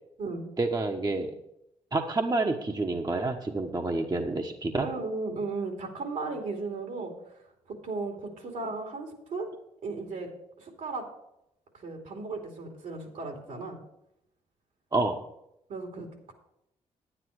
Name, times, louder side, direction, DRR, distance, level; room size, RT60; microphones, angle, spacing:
voice 1, 0.6-1.4 1.9-4.9 14.9-15.2, right 2 dB, 25° right, 4 dB, 1.1 m, -28 dB
voice 2, 4.8-7.4 7.7-9.5 9.8-10.3 10.6-11.1 11.7-13.8 15.7-16.3, right 3 dB, 70° right, 3 dB, 2.7 m, -35 dB
10.0 x 9.5 x 4.8 m, 0.82 s
supercardioid pair, 55°, 14 cm